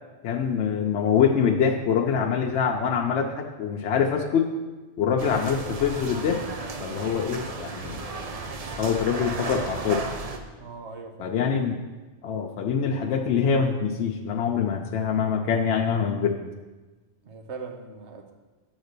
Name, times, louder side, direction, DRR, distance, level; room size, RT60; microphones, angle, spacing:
voice 1, 0.2-4.5 5.0-6.4 6.8-8.3 8.8-10.0 11.2-11.8 12.2-16.4, left 7 dB, 75° left, 2 dB, 0.9 m, -24 dB
sound 1, 5.2-10.4, right 3 dB, 40° right, 0.6 m, -34 dB
voice 2, 10.6-11.3 17.2-18.3, right 4 dB, 75° right, 4 dB, 1.2 m, -40 dB
7.9 x 4.0 x 6.6 m, 1.2 s
omnidirectional pair, 1.2 m